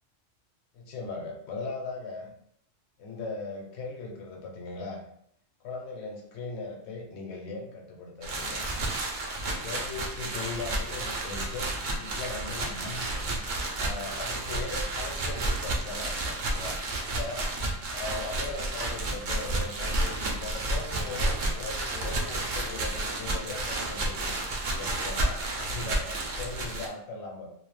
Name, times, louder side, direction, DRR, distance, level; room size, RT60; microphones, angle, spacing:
voice 1, 0.7-2.3 3.0-5.0 5.6-8.6 9.4-13.1 13.8-17.5 17.9-27.5, left 3 dB, 65° left, 1 dB, 0.8 m, -39 dB
sound 1, 8.2-26.9, right 2 dB, 60° right, 0.5 m, -31 dB
2.5 x 2.1 x 3.1 m, 0.71 s
omnidirectional pair, 1.3 m